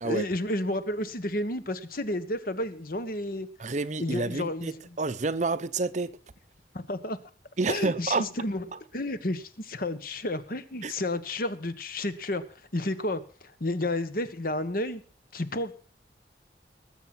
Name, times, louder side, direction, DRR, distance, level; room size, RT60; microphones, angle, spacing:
voice 1, 0.0-3.5 4.0-5.0 6.7-7.2 7.7-8.7 8.9-12.4 12.7-13.2 13.6-15.0 15.3-15.7, left 1 dB, 55° left, 1.3 m, -31 dB
voice 2, 3.6-6.1 7.6-8.2 10.8-10.9, right 3 dB, 40° right, 0.7 m, -29 dB
20.0 x 7.4 x 6.0 m
head